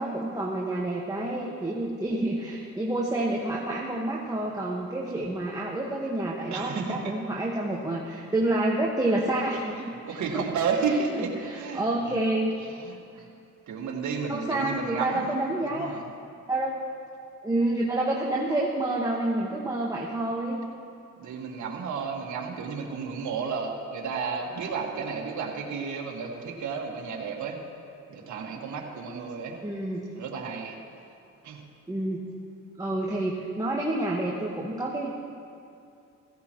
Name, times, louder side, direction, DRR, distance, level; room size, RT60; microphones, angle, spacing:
voice 1, 0.0-10.2 11.1-12.5 14.3-15.9 16.5-16.7 17.4-20.6 29.6-30.0 31.9-32.2 32.8-35.1, right 1 dB, 10° right, -3 dB, 1.5 m, -28 dB
voice 2, 6.5-7.2 9.7-12.4 12.6-13.3 13.7-16.1 21.2-27.6 28.1-29.6 30.2-30.8 31.4-31.6, right 5 dB, 70° right, 0 dB, 1.8 m, -32 dB
16.0 x 15.5 x 3.1 m, 2.6 s
cardioid pair, 90°, 30 cm